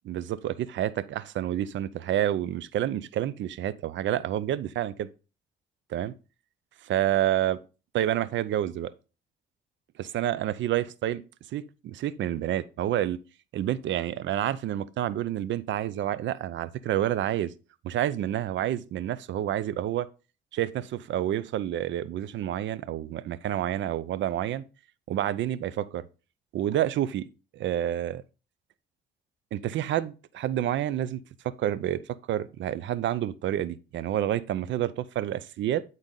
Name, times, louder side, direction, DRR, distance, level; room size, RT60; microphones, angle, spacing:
voice 1, 0.0-5.1 5.9-6.1 6.8-7.6 7.9-8.9 10.0-11.2 11.5-13.2 13.5-17.5 17.8-20.1 20.5-24.6 25.1-26.0 26.5-28.2 29.5-32.0 32.3-35.8, right 12 dB, 70° right, 0.5 m, -29 dB
8.9 x 4.0 x 3.8 m
cardioid pair, 90°, 20 cm